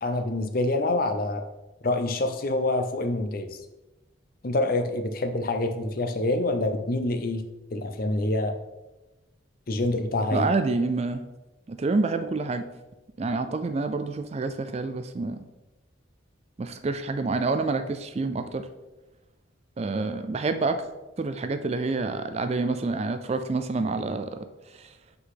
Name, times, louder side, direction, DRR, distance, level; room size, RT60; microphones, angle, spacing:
voice 1, 0.0-1.4 1.8-3.5 4.4-7.4 7.7-8.5 9.7-10.5, left 2 dB, 45° left, 7 dB, 0.6 m, -26 dB
voice 2, 10.3-11.2 11.7-12.7 13.2-15.5 16.6-18.7 19.8-20.8 21.2-24.5 24.8-24.9, right 3 dB, 30° right, 9 dB, 0.3 m, -27 dB
5.7 x 3.9 x 5.7 m, 1.0 s
head